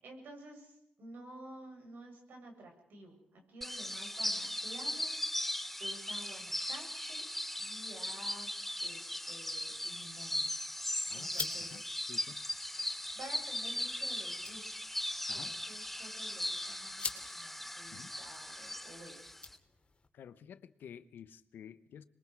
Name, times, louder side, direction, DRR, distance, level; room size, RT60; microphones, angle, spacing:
voice 1, 0.0-7.3 7.6-8.5 8.8-10.4 10.9-11.8 13.1-15.0 15.3-19.2, right 1 dB, 80° right, 2 dB, 7.4 m, -52 dB
sound 1, 3.6-19.6, left 1 dB, 5° left, 0.9 m, -38 dB
sound 2, 9.7-20.1, left 4 dB, 35° left, 2.9 m, -48 dB
voice 2, 11.1-11.8 12.1-12.5 15.3-15.5 17.9-18.1 20.1-22.1, left 8 dB, 85° left, 12 dB, 1.0 m, -51 dB
26.5 x 22.0 x 4.7 m, 0.78 s
cardioid pair, 75°, 3 cm